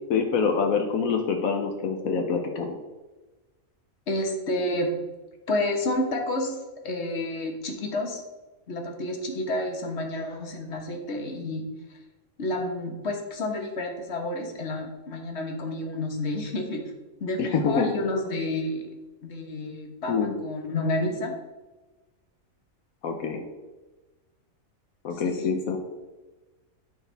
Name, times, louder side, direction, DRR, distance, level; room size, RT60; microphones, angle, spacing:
voice 1, 0.1-2.8 17.4-17.9 20.1-20.4 23.0-23.4 25.0-25.8, left 5 dB, 80° left, 4 dB, 1.3 m, -25 dB
voice 2, 4.1-4.9 5.5-6.6 6.8-8.2 8.7-11.6 12.4-16.8 17.2-18.9 19.2-20.1 20.4-21.3 25.2-25.5, left 1 dB, 55° left, 2 dB, 1.5 m, -30 dB
13.0 x 4.6 x 3.4 m, 1.2 s
omnidirectional pair, 1.4 m